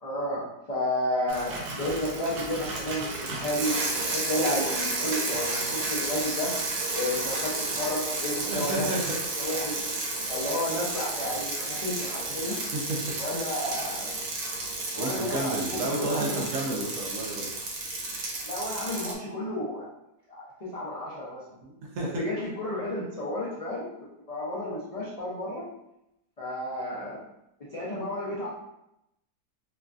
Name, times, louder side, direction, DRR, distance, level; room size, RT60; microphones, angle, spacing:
voice 1, 0.0-6.5 6.9-8.9 9.4-9.9 10.3-12.6 13.2-14.1 14.9-16.9 18.4-19.9 20.3-21.4 22.2-23.9 24.3-25.6 26.4-27.2 27.7-28.5, left 1 dB, 75° left, -9 dB, 0.3 m, -32 dB
Bicycle, 1.3-19.1, right 2 dB, 85° right, 1.2 m, -32 dB
voice 2, 8.4-9.1 9.7-9.8 12.4-13.0 15.0-17.5 21.6-22.2, right 2 dB, 65° right, -3 dB, 0.8 m, -32 dB
3.0 x 2.5 x 2.3 m, 0.85 s
omnidirectional pair, 1.6 m